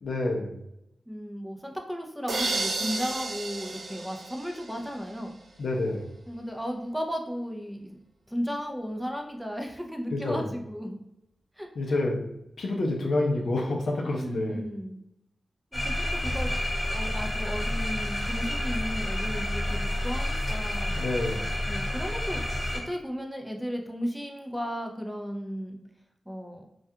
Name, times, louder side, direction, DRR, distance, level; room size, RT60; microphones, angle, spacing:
voice 1, 0.0-0.6 5.6-6.1 10.1-10.5 11.8-12.2 12.6-14.6 21.0-21.5, left 2 dB, 75° left, 0 dB, 0.5 m, -28 dB
voice 2, 1.1-5.4 6.3-8.0 8.3-11.0 11.6-12.0 14.0-15.0 15.7-16.5 16.9-21.1 21.7-22.4 22.7-25.8 26.3-26.7, equal, ahead, 2 dB, 0.4 m, -35 dB
sound 1, 2.3-5.1, right 2 dB, 70° right, 0.4 m, -32 dB
sound 2, 15.7-22.8, left 1 dB, 30° left, 1.0 m, -29 dB
2.3 x 2.2 x 2.7 m, 0.82 s
cardioid pair, 70°, 0 cm